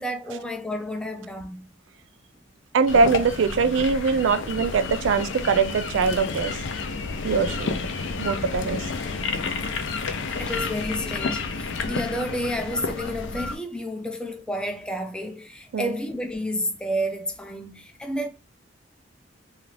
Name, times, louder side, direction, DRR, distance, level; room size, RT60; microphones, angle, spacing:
voice 1, 0.0-1.7 10.4-18.3, equal, 5° left, 0.3 m, -30 dB
voice 2, 2.7-6.6 7.2-7.7 8.2-8.9 15.7-15.9, right 5 dB, 80° right, 0.3 m, -22 dB
sound 1, 2.9-13.6, left 4 dB, 75° left, 0.4 m, -30 dB
2.4 x 2.3 x 3.1 m
head